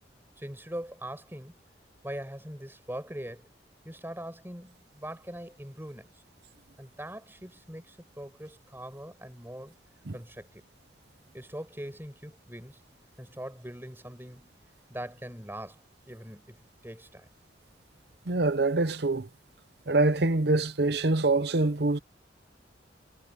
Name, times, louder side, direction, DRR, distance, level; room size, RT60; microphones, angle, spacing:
voice 1, 0.4-1.5 2.0-3.5 3.8-6.1 6.8-9.7 10.1-10.6 11.3-12.8 13.2-14.5 14.9-17.3, right 1 dB, 10° right, 7.0 m, -42 dB
voice 2, 18.3-19.3 19.9-22.0, right 2 dB, 60° right, 0.9 m, -25 dB
head